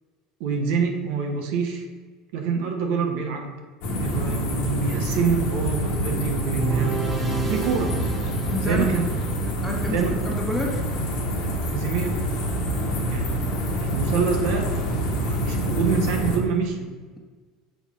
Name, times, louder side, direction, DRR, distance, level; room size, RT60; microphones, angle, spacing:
voice 1, 0.4-1.9 2.3-3.5 4.0-7.0 7.5-8.0 8.6-9.0 9.9-10.1 11.5-12.2 13.1-13.4 13.8-14.7 15.1-16.9, right 5 dB, 70° right, 3 dB, 0.9 m, -26 dB
sound 1, 3.8-16.4, right 1 dB, 70° left, 1.4 m, -26 dB
sound 2, 6.4-9.7, right 4 dB, 20° right, 1.0 m, -34 dB
voice 2, 8.5-9.0 9.6-10.8, left 1 dB, 5° left, -1 dB, 1.3 m, -29 dB
6.4 x 3.5 x 5.1 m, 1.4 s
supercardioid pair, 105°, 0 cm